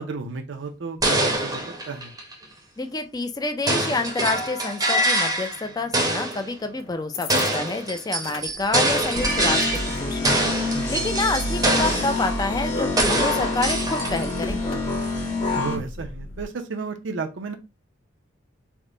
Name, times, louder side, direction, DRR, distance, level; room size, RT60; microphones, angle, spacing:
voice 1, 0.0-2.1 10.7-11.1 15.5-17.5, right 4 dB, 65° right, 5 dB, 0.6 m, -33 dB
sound 1, 1.0-2.4 3.7-5.6 5.9-6.5 7.3-10.0 10.2-12.2 13.0-14.4, right 1 dB, 20° right, 0.7 m, -24 dB
voice 2, 2.8-10.5 10.9-14.6, left 3 dB, 20° left, 7 dB, 0.4 m, -28 dB
sound 2, 6.3-6.4 6.8-7.8 8.1-16.5, left 2 dB, 75° left, 0.5 m, -39 dB
sound 3, 9.1-15.8, left 2 dB, 35° left, 1.1 m, -27 dB
3.5 x 2.1 x 3.7 m, 0.27 s
head